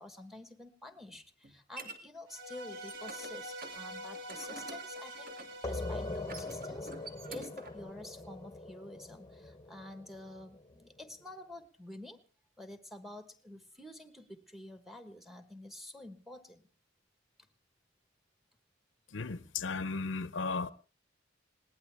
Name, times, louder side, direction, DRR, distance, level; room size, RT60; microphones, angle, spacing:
voice 1, 0.0-5.4 5.6-6.9 7.3-12.2 12.6-16.6, left 1 dB, ahead, 1.3 m, -49 dB
sound 1, 0.9-2.0 2.5-3.3 3.6-3.8 4.1-5.6 6.2-7.8, right 3 dB, 50° right, 2.5 m, -48 dB
sound 2, 2.3-7.5, right 1 dB, 70° right, 3.1 m, -46 dB
sound 3, 5.6-11.0, left 2 dB, 20° left, 0.9 m, -42 dB
voice 2, 19.1-20.7, left 4 dB, 70° left, 0.7 m, -35 dB
21.0 x 18.5 x 3.5 m
head